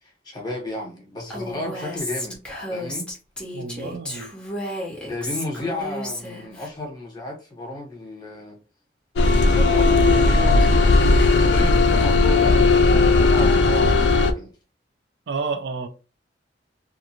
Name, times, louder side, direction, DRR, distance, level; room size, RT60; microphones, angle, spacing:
voice 1, 0.0-2.4 2.7-3.1 5.0-8.6 9.4-14.5, left 2 dB, 25° left, 1.0 m, -33 dB
Female speech woman speaking, 1.3-6.7, left 1 dB, 5° left, 0.8 m, -33 dB
voice 2, 3.5-4.3 15.3-15.9, right 4 dB, 65° right, 0.4 m, -30 dB
sound 1, 9.2-14.3, left 3 dB, 70° left, 0.3 m, -16 dB
sound 2, 9.2-14.3, equal, 40° right, 1.0 m, -33 dB
2.5 x 2.4 x 2.8 m
head